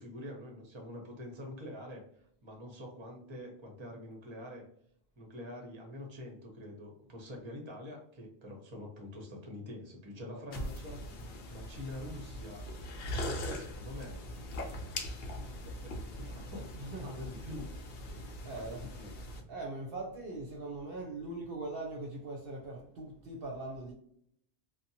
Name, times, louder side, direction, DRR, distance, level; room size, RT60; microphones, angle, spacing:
voice 1, 0.0-2.0 2.4-4.6 5.2-11.0 11.5-12.6 13.0-14.2 15.6-16.7 17.0-17.7 18.5-19.1, left 1 dB, 30° right, 0.7 m, -45 dB
voice 2, 10.1-10.5 16.7-17.3 18.4-19.0 19.5-23.9, right 2 dB, 60° right, 0.8 m, -41 dB
sound 1, 10.5-19.4, left 1 dB, 65° left, 0.8 m, -41 dB
2.7 x 2.2 x 2.7 m
omnidirectional pair, 1.1 m